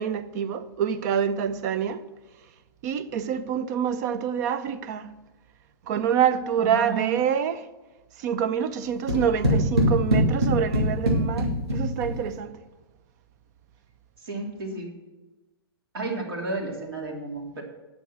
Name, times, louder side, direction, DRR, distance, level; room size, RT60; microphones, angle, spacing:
voice 1, 0.0-2.0 2.8-5.1 5.9-7.7 8.2-12.6, right 8 dB, 45° right, 0.7 m, -26 dB
voice 2, 6.6-7.1 14.2-14.9 15.9-17.6, right 3 dB, 65° right, 3.1 m, -32 dB
sound 1, 9.1-12.3, equal, 90° right, 2.7 m, -23 dB
9.0 x 6.5 x 7.5 m
figure-of-eight pair, 115°, 13 cm